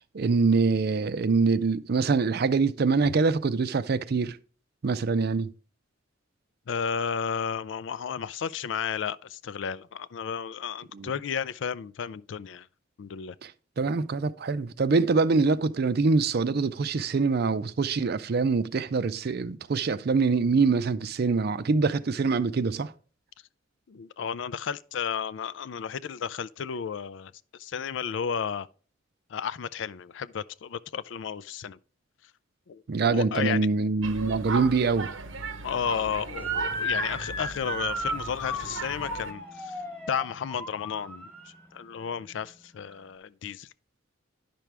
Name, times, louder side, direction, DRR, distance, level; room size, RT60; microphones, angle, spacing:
voice 1, 0.1-4.4 4.8-5.5 10.9-11.1 13.4-13.5 13.8-22.9 32.9-35.1, right 4 dB, 55° right, 0.5 m, -24 dB
voice 2, 6.7-12.7 13.0-13.4 23.9-28.7 29.3-31.8 32.7-33.7 35.6-39.8 40.1-43.7, left 7 dB, 65° left, 0.4 m, -33 dB
sound 1, 34.0-39.3, right 4 dB, 80° right, 0.9 m, -37 dB
Motor vehicle (road) / Siren, 36.3-41.6, equal, 10° left, 1.3 m, -34 dB
10.0 x 6.0 x 3.3 m
head